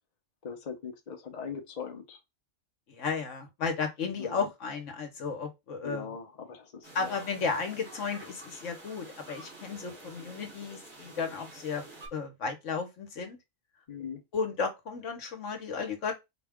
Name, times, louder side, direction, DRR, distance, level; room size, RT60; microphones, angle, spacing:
voice 1, 0.4-2.2 4.2-4.4 5.8-7.2 13.9-14.2, left 6 dB, 35° left, 0.8 m, -40 dB
voice 2, 2.9-6.2 6.9-11.8 12.1-13.4 14.3-16.2, left 5 dB, 70° left, 1.3 m, -34 dB
sound 1, 6.8-12.1, right 2 dB, 80° right, 2.4 m, -49 dB
4.5 x 2.3 x 3.5 m
omnidirectional pair, 1.4 m